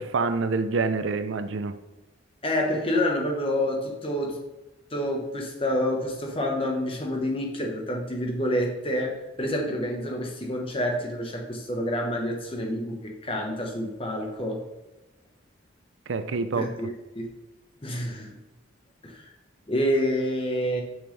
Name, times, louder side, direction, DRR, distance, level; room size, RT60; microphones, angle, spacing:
voice 1, 0.0-1.7 16.1-16.7, right 4 dB, 70° right, 10 dB, 0.5 m, -26 dB
voice 2, 2.4-4.4 4.9-14.6 16.5-16.9 17.1-17.3 17.8-18.4 19.0-19.3 19.7-20.8, left 1 dB, 25° left, 1 dB, 1.1 m, -28 dB
6.3 x 6.1 x 3.3 m, 1.0 s
head